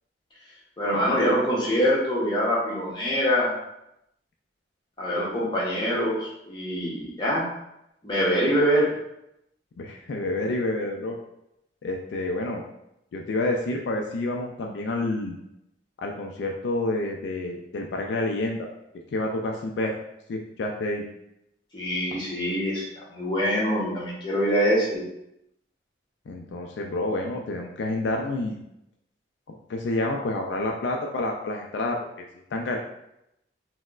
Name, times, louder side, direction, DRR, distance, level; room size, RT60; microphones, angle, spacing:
voice 1, 0.8-3.5 5.0-7.5 8.0-8.9 21.7-25.0, equal, 25° left, -5 dB, 0.8 m, -24 dB
voice 2, 9.8-11.2 11.8-12.6 13.1-15.4 16.0-18.7 19.1-19.9 20.3-21.0 26.3-28.6 29.5-32.8, left 2 dB, 70° left, 1 dB, 0.3 m, -29 dB
4.2 x 2.0 x 2.4 m, 0.83 s
head